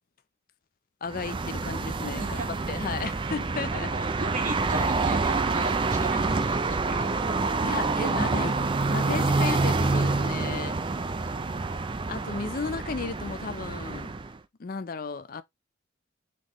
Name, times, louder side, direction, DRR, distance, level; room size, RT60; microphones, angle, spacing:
voice 1, 1.0-2.4 2.7-3.9 7.6-10.8 12.1-14.1 14.6-15.4, left 4 dB, 45° left, 0.5 m, -34 dB
sound 1, 1.1-14.4, right 3 dB, 25° right, 0.4 m, -27 dB
voice 2, 3.7-7.1 11.2-11.3, right 2 dB, 40° right, 1.7 m, -36 dB
4.1 x 3.5 x 3.0 m
head